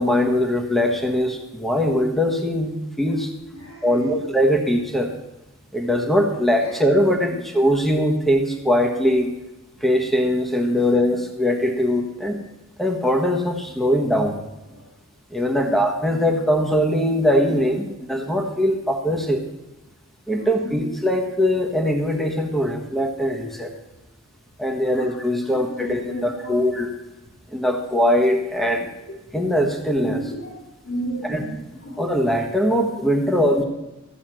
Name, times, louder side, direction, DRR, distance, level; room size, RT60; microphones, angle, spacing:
voice 1, 0.0-3.3 3.8-5.1 5.7-9.3 9.8-12.4 12.8-14.4 15.3-19.4 20.3-23.7 24.6-26.9 27.5-28.9 29.3-30.2 31.2-31.4 32.0-33.6, equal, ahead, 2 dB, 1.3 m, -21 dB
voice 2, 3.5-4.2 6.6-7.0 10.0-10.2 10.8-11.0 15.5-15.8 16.1-16.2 20.3-20.9 24.8-25.0 25.4-26.7 30.0-30.5 30.8-31.6 31.8-32.0 33.2-33.5, right 1 dB, 60° left, -4 dB, 3.3 m, -34 dB
14.5 x 6.3 x 7.6 m, 0.99 s
head